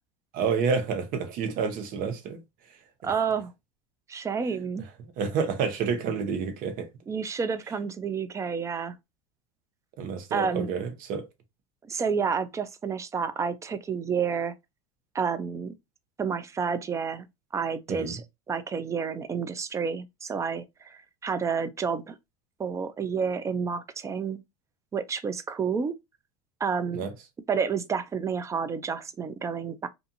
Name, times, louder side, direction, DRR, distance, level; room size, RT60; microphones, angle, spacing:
voice 1, 0.3-2.4 5.2-6.9 10.0-11.2 17.9-18.2 26.9-27.1, right 5 dB, 50° right, 0.8 m, -29 dB
voice 2, 3.0-3.5 4.1-4.8 7.1-9.0 10.3-10.7 11.9-14.5 15.1-15.7 16.2-17.3 17.5-22.2 22.6-24.4 24.9-25.9 26.6-27.0 27.5-29.9, right 6 dB, 15° right, 0.3 m, -30 dB
2.5 x 2.4 x 2.6 m
supercardioid pair, 110°, 18 cm